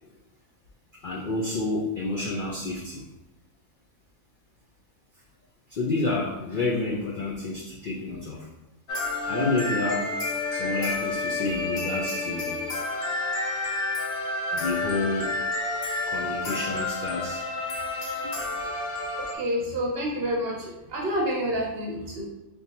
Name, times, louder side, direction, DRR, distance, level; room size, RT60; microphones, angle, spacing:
voice 1, 1.0-3.0 5.7-8.5 9.3-10.1 10.5-12.6 14.5-15.3 16.1-17.4 18.2-18.4, left 3 dB, 65° left, -4 dB, 0.5 m, -29 dB
sound 1, 8.9-19.4, left 2 dB, 85° left, 1.1 m, -30 dB
voice 2, 19.2-22.3, equal, 55° right, -2 dB, 0.7 m, -29 dB
3.6 x 2.7 x 2.8 m, 0.98 s
omnidirectional pair, 1.4 m